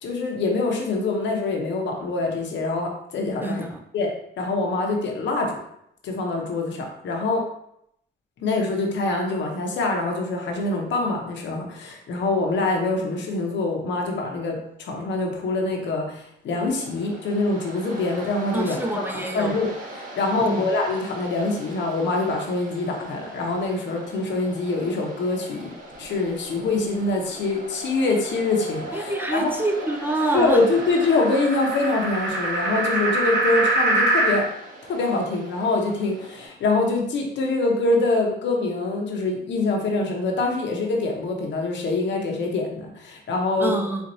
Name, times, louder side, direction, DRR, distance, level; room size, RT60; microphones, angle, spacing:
voice 1, 0.0-3.6 3.9-4.1 4.4-5.6 6.0-7.4 8.4-25.7 26.0-29.5 30.3-34.5 34.9-43.7, left 3 dB, 65° left, 1 dB, 0.8 m, -25 dB
voice 2, 3.4-3.8 18.5-19.6 20.4-20.7 28.9-30.6 43.6-44.1, right 2 dB, 10° right, 1 dB, 0.4 m, -26 dB
Waves surf, 16.7-36.5, right 1 dB, 45° right, 1.1 m, -41 dB
sound 1, 27.7-34.4, right 2 dB, 60° right, 0.9 m, -26 dB
4.3 x 2.5 x 2.7 m, 0.76 s
cardioid pair, 90°, 20 cm